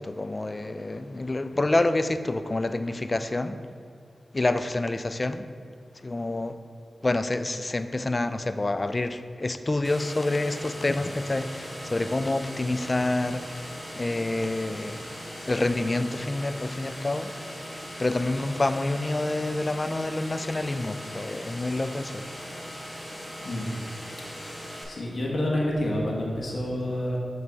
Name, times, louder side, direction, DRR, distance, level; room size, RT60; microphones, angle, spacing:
voice 1, 0.0-3.6 4.3-5.4 6.0-6.6 7.0-13.4 14.0-15.0 15.4-17.3 18.0-22.3, left 2 dB, 40° left, 11 dB, 0.3 m, -27 dB
sound 1, 9.8-24.8, equal, 5° left, 1.4 m, -39 dB
voice 2, 23.4-23.7 24.8-27.2, left 1 dB, 65° left, -3 dB, 1.3 m, -28 dB
7.3 x 3.1 x 4.7 m, 2.3 s
cardioid pair, 40°, 0 cm